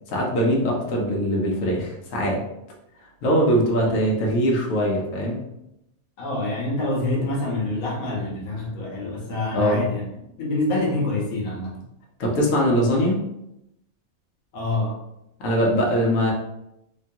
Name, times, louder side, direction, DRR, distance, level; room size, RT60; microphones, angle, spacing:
voice 1, 0.1-2.4 3.2-5.4 9.5-9.8 12.2-13.2 15.4-16.3, equal, 70° left, -2 dB, 1.0 m, -21 dB
voice 2, 6.2-10.0 10.4-11.8 14.5-15.0, left 2 dB, 90° left, -3 dB, 1.2 m, -26 dB
2.9 x 2.2 x 2.6 m, 0.84 s
omnidirectional pair, 1.5 m